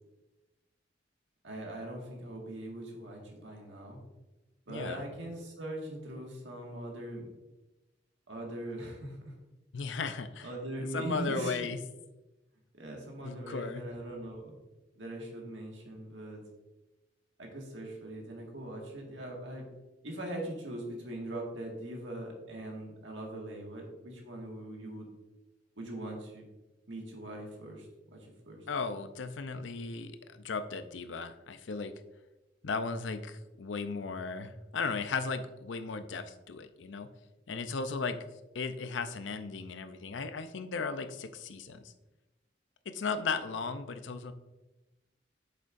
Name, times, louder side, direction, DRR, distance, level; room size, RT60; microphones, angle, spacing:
voice 1, 1.4-4.0 4.7-7.3 8.3-9.3 10.4-11.6 12.8-14.5 15.0-16.4 17.4-19.7 20.0-25.1 25.8-26.4 26.9-28.6, right 1 dB, 80° right, 0 dB, 1.9 m, -41 dB
voice 2, 4.7-5.1 9.7-10.5 10.8-11.8 13.2-13.9 28.7-31.9 32.6-37.1 37.5-38.2 38.5-41.8 42.9-44.3, left 4 dB, 80° left, 10 dB, 0.6 m, -36 dB
8.4 x 6.7 x 2.6 m, 1.0 s
head